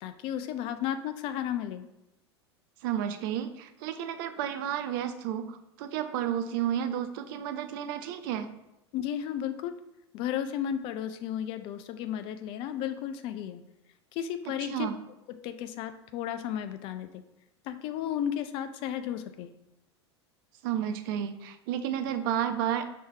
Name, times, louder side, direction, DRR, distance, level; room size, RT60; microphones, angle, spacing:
voice 1, 0.0-1.9 8.9-9.7 10.1-13.6 14.1-14.9 15.3-17.1 17.7-19.5, left 10 dB, 40° left, 10 dB, 0.4 m, -33 dB
voice 2, 2.8-8.5 14.6-15.0 20.6-22.8, right 10 dB, 50° right, 9 dB, 0.4 m, -31 dB
5.4 x 2.8 x 3.3 m, 0.92 s
figure-of-eight pair, 80°, 14 cm